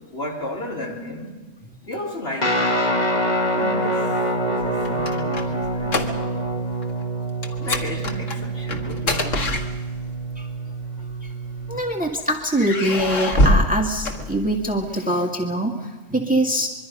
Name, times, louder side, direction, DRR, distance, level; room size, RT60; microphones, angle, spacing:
voice 1, 0.1-1.3 1.8-2.7 3.6-4.1 4.5-6.6 7.6-9.4, left 1 dB, 50° left, -1 dB, 4.3 m, -33 dB
Guitar, 2.4-11.8, right 1 dB, 35° left, 1.9 m, -25 dB
sound 1, 4.6-6.5 6.8-7.0 7.4-10.2 11.1-11.9 12.5-14.8, left 1 dB, 70° left, 2.0 m, -24 dB
voice 2, 11.7-16.7, right 1 dB, 5° right, 2 dB, 1.9 m, -23 dB
25.0 x 23.5 x 5.4 m, 1.2 s
omnidirectional pair, 1.4 m